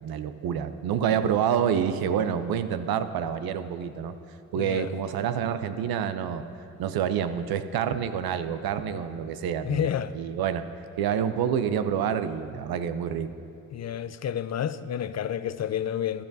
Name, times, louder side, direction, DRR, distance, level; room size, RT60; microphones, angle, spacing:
voice 1, 0.0-4.2 4.5-6.4 6.8-10.7 11.0-13.3, right 8 dB, 75° right, 0.6 m, -28 dB
voice 2, 4.6-4.9 9.6-10.1 13.7-16.3, left 9 dB, 45° left, 0.4 m, -30 dB
13.5 x 12.5 x 2.7 m
supercardioid pair, 50°, 37 cm